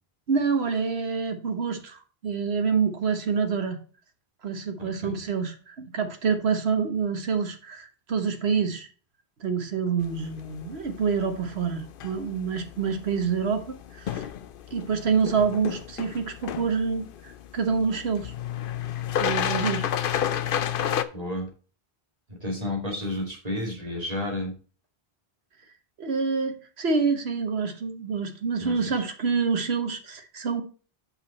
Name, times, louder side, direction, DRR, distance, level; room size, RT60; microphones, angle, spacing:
voice 1, 0.3-3.8 4.4-8.9 9.4-14.3 14.7-18.3 19.2-19.9 26.0-30.6, right 5 dB, 90° right, 6 dB, 1.4 m, -27 dB
voice 2, 4.8-5.1 21.1-21.5 22.3-24.5 28.6-29.0, left 1 dB, 40° right, -1 dB, 2.7 m, -32 dB
sound 1, 10.0-21.0, left 9 dB, 65° left, 0.8 m, -32 dB
8.2 x 5.6 x 4.2 m, 0.38 s
omnidirectional pair, 1.0 m